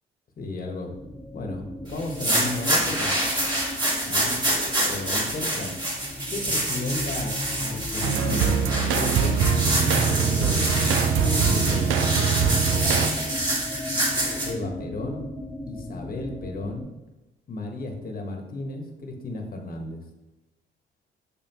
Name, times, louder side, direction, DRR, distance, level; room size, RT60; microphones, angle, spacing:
voice 1, 0.4-0.9 1.3-3.1 4.0-4.4 4.9-5.8 6.3-8.6 8.9-13.1 14.4-15.2 15.7-16.9 17.5-20.0, left 2 dB, 45° left, 3 dB, 1.3 m, -34 dB
sound 1, 0.9-16.8, left 1 dB, 5° left, 0.5 m, -36 dB
sound 2, 2.0-14.5, right 1 dB, 20° right, 2.1 m, -27 dB
sound 3, 8.0-13.1, right 7 dB, 85° right, 0.5 m, -23 dB
6.6 x 5.4 x 3.0 m, 1.0 s
cardioid pair, 90°, 20 cm